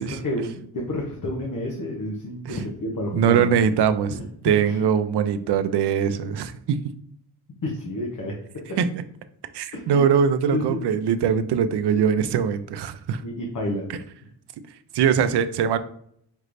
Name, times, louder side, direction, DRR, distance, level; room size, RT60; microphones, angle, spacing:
voice 1, 0.0-3.5 4.1-4.2 4.6-4.8 7.6-8.3 8.7-8.8 9.7-10.0 10.5-10.8 13.2-13.9, left 1 dB, 55° left, -1 dB, 1.0 m, -29 dB
voice 2, 3.1-4.1 4.4-6.9 8.8-8.9 9.5-13.2 14.9-15.8, right 7 dB, 80° right, 11 dB, 0.5 m, -22 dB
5.3 x 3.1 x 2.6 m, 0.68 s
cardioid pair, 100°, 40 cm